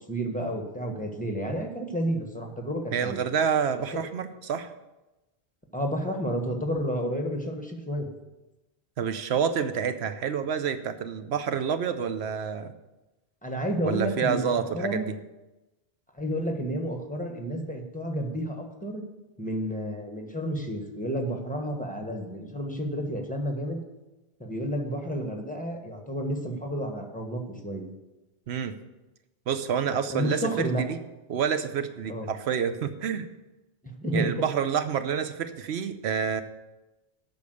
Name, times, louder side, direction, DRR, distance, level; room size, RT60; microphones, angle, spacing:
voice 1, 0.1-3.2 5.7-8.1 13.4-15.1 16.1-19.0 19.4-23.8 24.4-27.9 30.1-30.8 32.1-32.3 33.8-34.5, equal, 10° left, 2 dB, 1.3 m, -31 dB
voice 2, 2.9-4.7 9.0-12.7 13.8-15.1 28.5-28.7 29.5-31.0 31.3-33.3 34.1-36.4, right 7 dB, 80° right, 10 dB, 0.9 m, -28 dB
8.4 x 6.3 x 7.8 m, 1.0 s
omnidirectional pair, 1.1 m